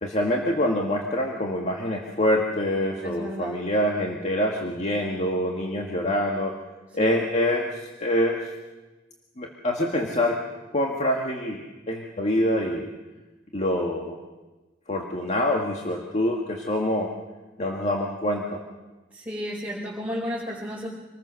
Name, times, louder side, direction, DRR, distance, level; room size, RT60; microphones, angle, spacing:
voice 1, 0.0-6.6 6.9-7.7 8.0-8.4 9.4-10.4 10.7-12.9 13.5-14.2 14.9-17.1 17.6-18.6, left 1 dB, 40° left, 0 dB, 1.9 m, -25 dB
voice 2, 3.0-3.6 19.1-20.9, equal, 10° right, -7 dB, 4.6 m, -32 dB
26.0 x 20.5 x 6.4 m, 1.2 s
head